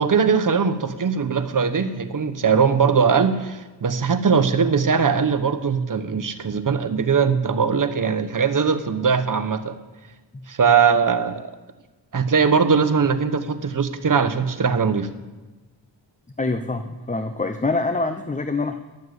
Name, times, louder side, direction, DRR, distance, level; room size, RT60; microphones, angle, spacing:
voice 1, 0.0-9.8 10.5-11.5 12.1-15.1, right 6 dB, 45° right, 9 dB, 1.1 m, -20 dB
voice 2, 16.4-18.8, left 3 dB, 15° left, 8 dB, 0.7 m, -25 dB
12.0 x 7.1 x 8.0 m, 1.2 s
cardioid pair, 55°, 45 cm